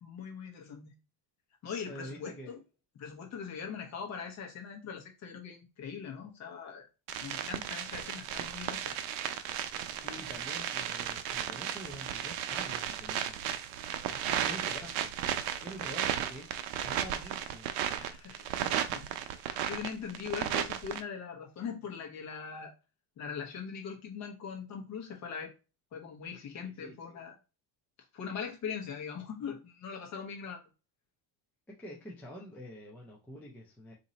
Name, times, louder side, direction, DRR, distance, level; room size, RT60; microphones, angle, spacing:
voice 1, 0.0-0.9 1.6-2.6 3.0-6.9 7.2-8.9 10.2-10.4 14.0-14.6 15.6-15.7 18.0-19.1 19.3-22.7 23.2-25.5 25.9-27.4 28.1-30.7, left 6 dB, 35° left, 0.9 m, -41 dB
voice 2, 1.9-2.6 10.0-13.5 14.4-15.2 15.6-16.5 16.8-17.8 18.7-19.0 20.5-20.6 26.6-27.0 31.7-33.9, equal, 5° left, 0.3 m, -47 dB
sound 1, 7.1-21.0, right 10 dB, 80° right, 0.6 m, -35 dB
2.8 x 2.6 x 4.0 m
cardioid pair, 175°, 45 cm